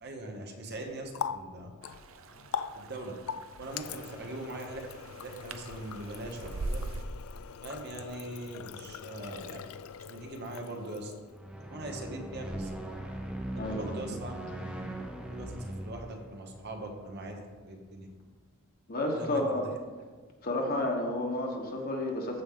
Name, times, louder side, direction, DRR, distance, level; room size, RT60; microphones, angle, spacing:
voice 1, 0.0-1.7 2.8-3.1 3.6-4.9 5.1-6.8 7.6-9.6 10.1-11.1 11.7-12.8 13.7-14.4 15.3-18.1 19.0-19.6, right 1 dB, 50° right, 3 dB, 1.2 m, -41 dB
Water tap faucet, 0.6-11.4, left 7 dB, 75° left, 0.4 m, -42 dB
sound 1, 1.8-7.0, right 2 dB, 65° right, 0.6 m, -42 dB
sound 2, 11.2-17.6, right 1 dB, 5° right, 0.6 m, -40 dB
voice 2, 13.5-14.2 18.9-19.6 20.4-22.4, left 1 dB, 45° left, 1 dB, 1.3 m, -31 dB
14.0 x 4.8 x 3.8 m, 1.4 s
head